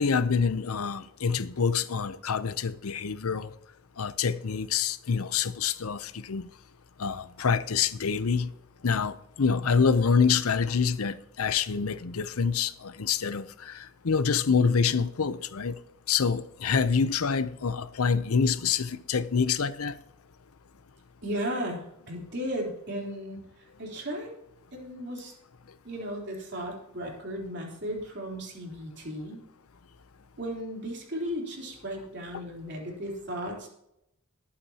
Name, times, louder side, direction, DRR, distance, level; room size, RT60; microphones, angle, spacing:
voice 1, 0.0-3.5 4.0-6.5 7.0-8.5 8.8-15.8 16.1-20.0, left 5 dB, 85° left, 0.7 m, -26 dB
voice 2, 21.2-23.5 23.8-24.3 24.7-25.3 25.8-29.4 30.4-33.7, equal, 55° right, 3.7 m, -35 dB
20.0 x 8.5 x 2.9 m
head